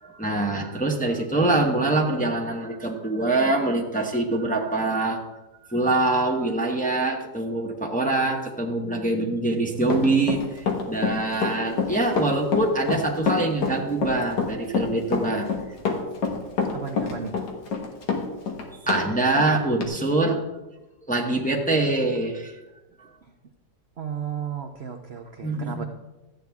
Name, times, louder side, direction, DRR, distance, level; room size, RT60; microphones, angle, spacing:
voice 1, 0.0-5.2 5.7-15.5 18.8-20.4 21.0-22.5 25.4-25.8, right 2 dB, 5° left, 0 dB, 0.9 m, -24 dB
Run, 9.8-19.0 19.3-19.5 19.8-19.9, left 5 dB, 70° left, 2.0 m, -26 dB
voice 2, 16.7-17.4 24.0-25.8, right 7 dB, 55° right, 3 dB, 0.7 m, -33 dB
13.5 x 9.0 x 3.5 m, 1.1 s
omnidirectional pair, 1.9 m